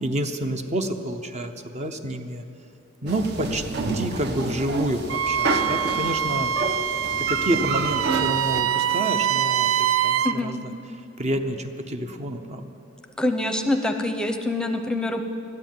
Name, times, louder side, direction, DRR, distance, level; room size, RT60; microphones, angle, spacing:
voice 1, 0.0-2.4 3.0-3.6 3.9-6.5 7.2-10.7 11.2-12.7, right 1 dB, 35° right, 6 dB, 0.8 m, -28 dB
sound 1, 3.1-8.6, right 2 dB, 55° right, 1.1 m, -29 dB
Wind instrument woodwind instrument, 5.1-10.4, right 9 dB, 75° right, 0.4 m, -24 dB
voice 2, 10.2-10.6 13.2-15.2, left 1 dB, 5° left, 6 dB, 0.7 m, -25 dB
13.5 x 9.7 x 9.4 m, 2.6 s
head